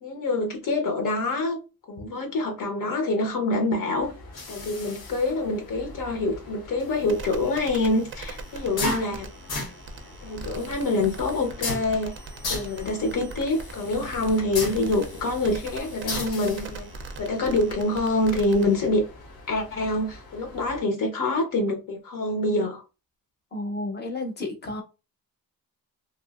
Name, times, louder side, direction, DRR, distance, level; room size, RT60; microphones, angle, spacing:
voice 1, 0.0-1.6 1.9-4.1 4.5-9.3 10.2-12.1 12.5-16.9 17.2-19.0 19.5-22.8, left 2 dB, 60° left, 0.8 m, -26 dB
sound 1, 4.0-20.8, left 2 dB, 90° left, 0.9 m, -38 dB
sound 2, 7.1-18.9, right 3 dB, 35° right, 0.4 m, -41 dB
voice 2, 23.5-24.8, left 2 dB, 30° left, 0.7 m, -31 dB
3.0 x 2.4 x 2.3 m
wide cardioid pair, 165°, 36 cm